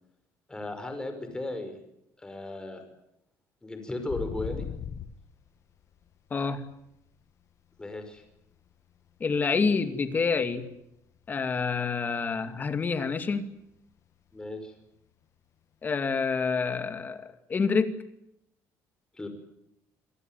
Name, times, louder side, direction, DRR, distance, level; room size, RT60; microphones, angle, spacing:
voice 1, 0.5-1.8 2.2-2.8 3.6-4.7 7.8-8.2 14.3-14.7 19.1-19.3, left 2 dB, 10° left, 7 dB, 5.6 m, -36 dB
sound 1, 4.1-7.4 7.7-10.0 10.3-10.7 11.0-12.9 13.2-13.3 13.6-14.0 14.3-14.5 16.6-16.7, left 8 dB, 50° left, 1.4 m, -40 dB
voice 2, 6.3-6.6 9.2-10.6 11.3-13.5 15.8-17.9, left 5 dB, 30° left, 9 dB, 2.5 m, -27 dB
27.5 x 18.5 x 9.4 m, 0.80 s
cardioid pair, 135°, 7 cm